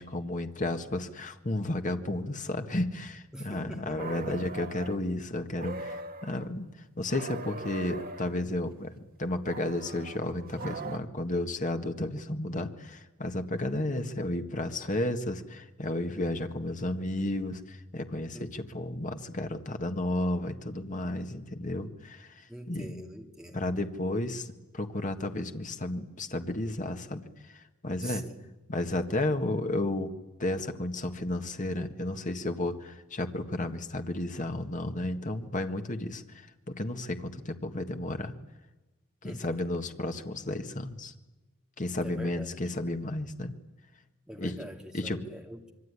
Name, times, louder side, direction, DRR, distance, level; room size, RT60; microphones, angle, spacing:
voice 1, 0.0-6.7 7.0-22.9 23.5-28.3 28.7-30.1 30.4-38.3 39.2-41.1 41.8-43.5 44.4-44.5 44.9-45.2, left 1 dB, 35° left, 6 dB, 1.8 m, -33 dB
voice 2, 3.3-4.4 18.3-18.8 22.5-23.7 28.0-28.4 39.2-39.7 42.0-42.6 44.3-45.6, equal, 5° right, 2 dB, 2.6 m, -44 dB
sound 1, 4.0-5.0 5.6-6.5 7.1-8.4 9.5-11.0, right 3 dB, 45° right, 1.7 m, -40 dB
26.0 x 23.5 x 9.8 m, 1.1 s
head